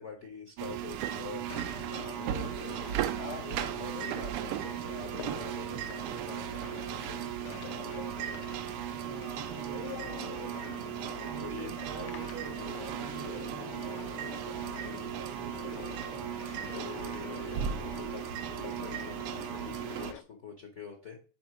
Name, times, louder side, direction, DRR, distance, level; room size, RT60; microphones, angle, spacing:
voice 1, 0.0-1.7 2.2-2.5 3.2-7.9 10.7-11.0 11.3-11.7 16.6-18.3 18.6-21.2, left 6 dB, 55° left, 2 dB, 0.8 m, -46 dB
sound 1, 0.6-20.1, right 11 dB, 85° right, 1.5 m, -37 dB
sound 2, 1.5-20.2, left 12 dB, 80° left, 1.4 m, -45 dB
voice 2, 8.9-10.2 11.3-12.5 12.9-14.3 15.0-16.3, right 7 dB, 70° right, 5 dB, 1.1 m, -47 dB
5.9 x 4.1 x 4.8 m, 0.40 s
omnidirectional pair, 2.4 m